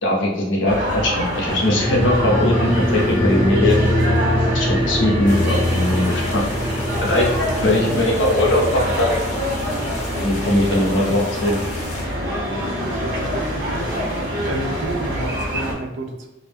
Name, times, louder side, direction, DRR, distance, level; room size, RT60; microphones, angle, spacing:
voice 1, 0.0-3.8 4.5-6.4 7.0-7.3 7.6-9.2 10.2-11.6, left 1 dB, 80° left, -1 dB, 0.6 m, -20 dB
sound 1, 0.6-15.7, equal, 55° right, 0.8 m, -26 dB
sound 2, 1.5-12.3 12.6-12.7, left 1 dB, 5° right, 0.7 m, -24 dB
sound 3, 5.2-12.0, left 2 dB, 40° left, 0.6 m, -35 dB
voice 2, 7.6-8.1 8.4-8.5 8.8-8.9 12.9-13.9 14.4-16.3, right 2 dB, 75° right, 3 dB, 0.4 m, -31 dB
2.3 x 2.0 x 3.3 m, 0.98 s
head